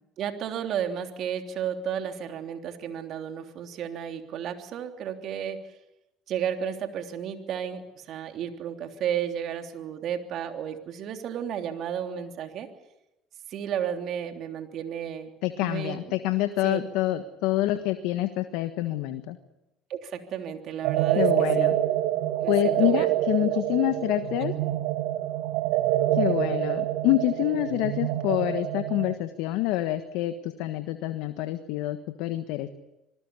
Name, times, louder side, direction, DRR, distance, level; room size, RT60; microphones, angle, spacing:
voice 1, 0.2-5.6 6.3-12.7 13.5-15.3 15.6-16.1 16.6-16.8 19.9-21.3 21.6-21.8 22.4-23.1 23.4-23.6, right 9 dB, 60° right, 5 dB, 3.2 m, -33 dB
voice 2, 15.4-19.4 21.1-21.8 22.5-24.6 26.1-32.7, left 15 dB, 70° left, 9 dB, 1.4 m, -27 dB
sound 1, 20.8-29.1, right 13 dB, 75° right, 2.1 m, -26 dB
26.5 x 19.5 x 8.4 m, 0.92 s
hypercardioid pair, 65°, 0 cm